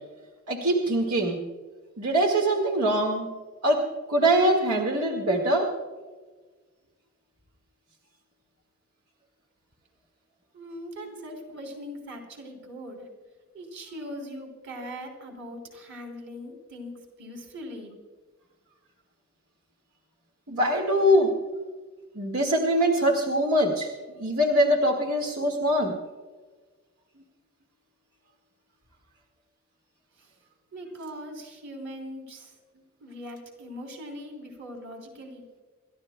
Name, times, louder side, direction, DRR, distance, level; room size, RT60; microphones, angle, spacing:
voice 1, 0.5-1.4 2.0-3.3 3.6-3.8 4.1-5.7 11.0-11.1 20.5-21.3 22.2-23.9 24.2-25.9, right 1 dB, 85° right, 1 dB, 1.8 m, -23 dB
voice 2, 10.5-13.0 13.5-16.9 17.2-17.9 30.7-32.5 33.0-35.4, equal, 55° right, 2 dB, 3.3 m, -40 dB
29.0 x 13.5 x 2.2 m, 1.4 s
head